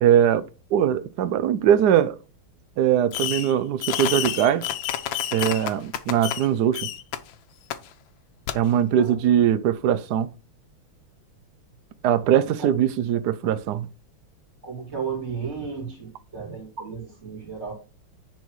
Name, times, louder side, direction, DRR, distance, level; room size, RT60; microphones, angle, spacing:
voice 1, 0.0-0.5 0.7-2.2 2.8-4.7 5.3-6.9 8.5-10.3 12.0-13.9, right 10 dB, 80° right, 0.9 m, -21 dB
Fireworks, 3.1-3.5 3.8-6.5 6.7-7.2 7.7-7.8 8.5-8.6, left 11 dB, 70° left, 1.4 m, -29 dB
voice 2, 12.1-12.7 14.6-17.7, right 6 dB, 30° right, 3.0 m, -34 dB
10.0 x 4.5 x 4.7 m
omnidirectional pair, 2.4 m